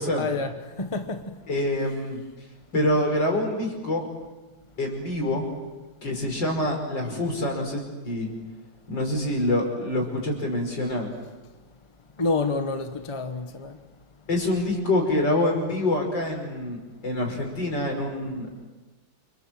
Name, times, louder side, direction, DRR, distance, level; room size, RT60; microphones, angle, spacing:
voice 1, 0.2-1.3 12.2-13.7, left 3 dB, 20° left, 1.1 m, -28 dB
voice 2, 1.5-2.2 2.7-4.1 4.8-5.5 6.0-8.3 8.9-11.1 14.3-18.7, left 1 dB, 65° left, 5.8 m, -26 dB
28.5 x 25.5 x 7.7 m
omnidirectional pair, 2.1 m